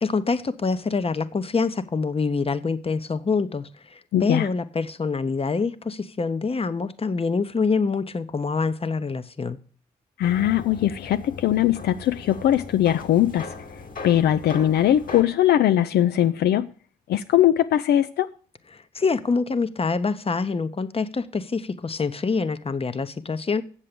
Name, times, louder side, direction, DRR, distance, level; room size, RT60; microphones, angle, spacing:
voice 1, 0.0-9.6 18.7-23.6, left 4 dB, 35° left, 0.9 m, -26 dB
voice 2, 4.1-4.5 10.2-13.5 14.0-16.7 17.1-18.3, left 11 dB, 80° left, 0.4 m, -20 dB
sound 1, 10.2-15.2, left 4 dB, 55° left, 2.0 m, -39 dB
7.8 x 7.4 x 6.7 m
supercardioid pair, 50°, 17 cm